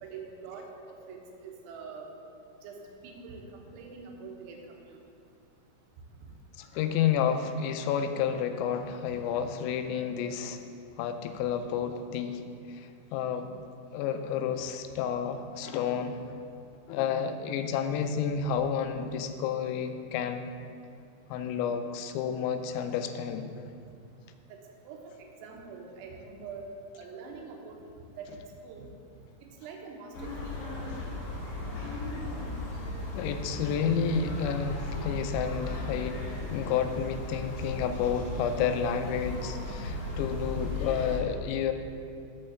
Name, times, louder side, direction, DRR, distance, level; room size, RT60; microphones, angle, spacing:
voice 1, 0.0-2.1 2.6-4.6 4.9-5.0 24.9-25.0 25.4-26.7 27.0-27.8 28.2-28.9 29.6-30.5, right 5 dB, 85° right, 1 dB, 3.7 m, -44 dB
voice 2, 6.6-10.6 11.0-12.4 12.7-13.5 13.9-16.4 16.9-20.5 21.3-23.5 33.2-41.7, left 7 dB, 85° left, 8 dB, 3.2 m, -30 dB
sound 1, 30.1-41.2, left 2 dB, 55° left, 2.4 m, -36 dB
8.1 x 5.4 x 7.0 m, 2.4 s
omnidirectional pair, 5.9 m